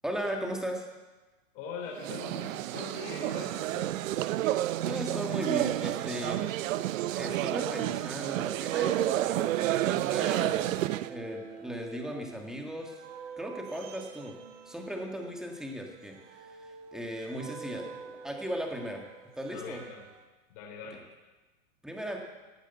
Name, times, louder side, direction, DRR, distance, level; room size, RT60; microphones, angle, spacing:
voice 1, 0.0-0.9 4.8-6.4 7.1-13.0 13.4-14.3 14.6-19.0 19.4-19.8 21.8-22.2, equal, ahead, 1 dB, 1.7 m, -37 dB
voice 2, 1.5-3.9 19.5-20.0 20.5-21.0, left 5 dB, 45° left, -1 dB, 3.5 m, -42 dB
sound 1, 2.0-11.1, right 14 dB, 75° right, 0.6 m, -30 dB
sound 2, 10.6-20.2, right 6 dB, 60° right, 1.7 m, -48 dB
15.5 x 8.5 x 8.0 m, 1.2 s
supercardioid pair, 150°, 40 cm